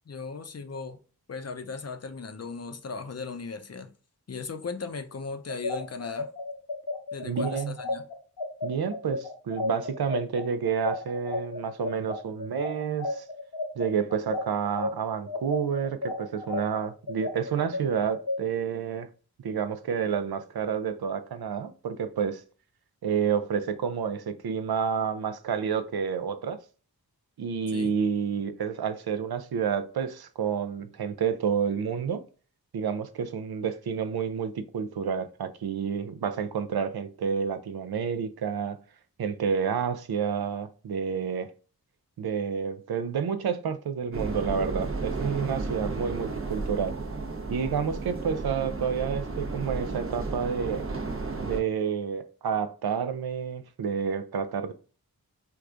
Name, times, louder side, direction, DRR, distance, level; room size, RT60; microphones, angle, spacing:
voice 1, 0.1-1.0 1.3-3.9 4.3-6.3 7.1-8.0 27.7-27.9 47.9-48.0, left 4 dB, 40° left, 0.6 m, -37 dB
sound 1, 5.5-14.9 15.3-18.4, left 2 dB, 75° left, 1.0 m, -32 dB
voice 2, 7.2-7.7 8.6-13.2 13.8-19.1 19.4-22.4 23.0-26.6 27.4-32.2 32.7-38.8 39.2-41.5 42.2-47.0 47.5-50.9 51.4-54.7, right 7 dB, 75° right, 0.5 m, -29 dB
sound 2, 44.1-51.6, right 3 dB, 35° right, 0.7 m, -33 dB
4.6 x 2.2 x 2.5 m
wide cardioid pair, 50°, 38 cm